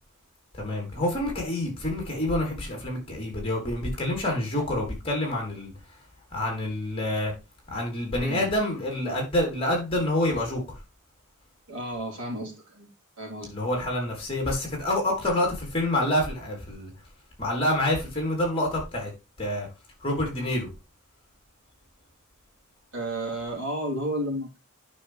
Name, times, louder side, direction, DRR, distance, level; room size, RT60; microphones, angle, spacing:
voice 1, 0.5-5.7 6.3-7.3 7.7-10.8 13.4-16.9 17.4-19.1 19.4-19.7 20.0-20.7, left 1 dB, 25° left, 3.7 m, -27 dB
voice 2, 8.2-8.5 11.7-12.9 13.2-13.5 22.9-24.6, right 1 dB, 75° right, 3.8 m, -32 dB
9.2 x 6.0 x 3.4 m
head